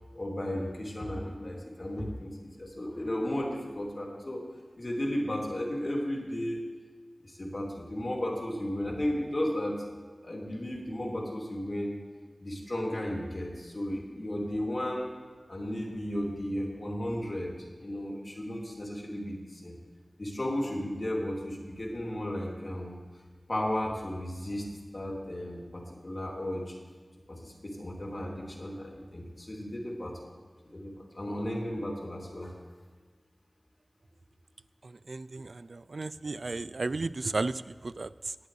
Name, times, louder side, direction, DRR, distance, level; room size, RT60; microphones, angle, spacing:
voice 1, 0.1-4.4 4.8-6.6 7.2-9.8 10.2-11.9 12.4-15.1 15.5-19.8 20.2-23.0 23.5-24.7 24.9-26.7 27.3-30.3 30.6-32.5, left 1 dB, 50° left, -1 dB, 2.7 m, -34 dB
voice 2, 34.8-38.4, right 3 dB, 75° right, 16 dB, 0.3 m, -34 dB
19.0 x 9.5 x 3.2 m, 1.4 s
wide cardioid pair, 40°, 0 cm